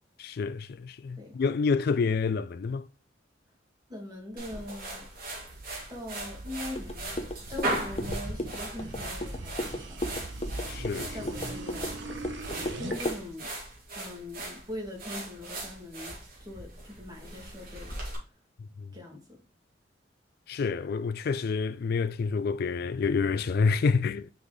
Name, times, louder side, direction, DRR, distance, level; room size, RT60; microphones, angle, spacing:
voice 1, 0.2-2.9 10.7-11.3 18.8-18.9 20.5-24.3, left 5 dB, 55° left, 0.3 m, -28 dB
voice 2, 3.9-5.1 5.9-10.0 11.1-12.1 12.8-13.5 13.9-17.9 18.9-19.4, left 1 dB, 20° right, 2.2 m, -41 dB
sound 1, 4.4-18.2, right 1 dB, 55° right, 2.4 m, -39 dB
sound 2, 5.0-13.0, right 2 dB, 80° right, 1.1 m, -41 dB
sound 3, 6.7-13.2, left 1 dB, 35° left, 0.8 m, -36 dB
6.0 x 5.3 x 3.2 m
head